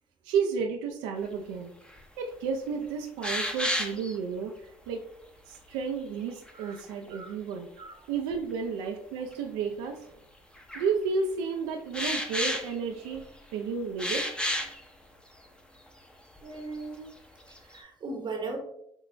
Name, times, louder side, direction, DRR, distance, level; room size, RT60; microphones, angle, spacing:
voice 1, 0.2-1.7 2.2-5.0 5.5-7.7 8.1-10.0 10.7-13.3 13.5-14.3, right 5 dB, 85° right, 3 dB, 0.4 m, -32 dB
sound 1, 1.9-2.0 2.5-2.6 3.2-4.2 6.3-7.1 8.3-8.4 9.3-9.4 10.5-10.9 11.9-13.4 14.0-14.8 15.4-15.5 15.9-16.0 16.4-16.8 17.2-17.8, equal, 10° left, 0.6 m, -32 dB
voice 2, 16.4-17.1 17.5-18.6, right 3 dB, 45° right, 2 dB, 0.8 m, -38 dB
6.1 x 2.1 x 2.5 m, 0.74 s
supercardioid pair, 70°, 11 cm